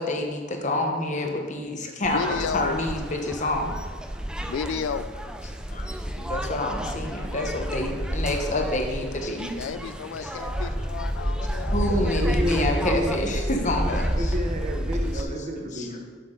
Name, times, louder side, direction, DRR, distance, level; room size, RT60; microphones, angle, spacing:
voice 1, 0.0-3.7 5.7-5.9 6.2-9.5 10.2-10.3 10.6-10.7 11.7-14.3 15.1-15.2 15.7-16.0, left 2 dB, 40° left, 2 dB, 1.0 m, -28 dB
voice 2, 2.0-2.8 4.5-5.1 9.6-11.8, left 6 dB, 85° left, 12 dB, 0.3 m, -32 dB
sound 1, 2.0-15.2, equal, 5° right, 0.3 m, -30 dB
voice 3, 11.8-13.6 14.1-16.0, equal, 40° right, 3 dB, 0.9 m, -30 dB
7.9 x 6.9 x 3.8 m, 1.5 s
head